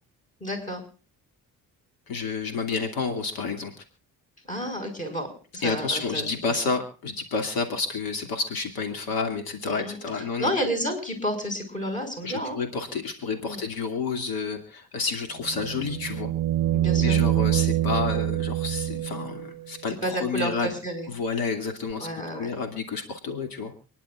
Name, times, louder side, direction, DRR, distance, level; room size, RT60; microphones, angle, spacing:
voice 1, 0.4-0.8 4.4-6.3 6.5-6.6 9.7-12.6 13.4-13.7 16.7-17.2 20.0-21.1 22.0-22.5, equal, 20° left, 3 dB, 5.5 m, -31 dB
voice 2, 2.1-3.8 5.6-10.5 12.2-16.3 17.0-20.7 21.1-23.7, left 4 dB, 75° left, 5 dB, 2.6 m, -30 dB
sound 1, 15.4-19.5 21.9-22.0, right 13 dB, 85° right, 0.6 m, -25 dB
29.0 x 11.0 x 2.4 m, 0.38 s
cardioid pair, 130°, 36 cm